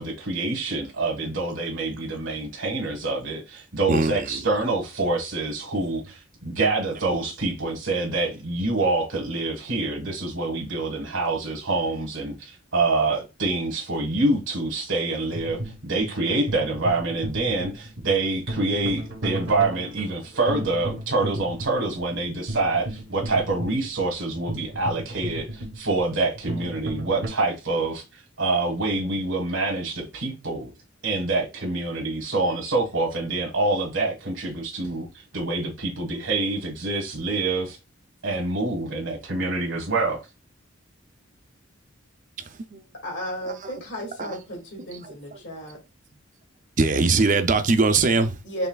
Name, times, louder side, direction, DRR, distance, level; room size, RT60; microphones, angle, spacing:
voice 1, 0.0-30.7 31.0-37.8 38.2-40.2, right 2 dB, 80° right, 1.4 m, -26 dB
voice 2, 3.9-4.4 42.7-42.8 44.2-44.4 46.8-48.4, right 3 dB, 40° right, 0.5 m, -21 dB
sound 1, 15.3-27.3, right 1 dB, 60° right, 1.0 m, -35 dB
voice 3, 43.0-45.8 48.4-48.7, equal, 60° left, 2.1 m, -33 dB
5.5 x 3.4 x 2.3 m
head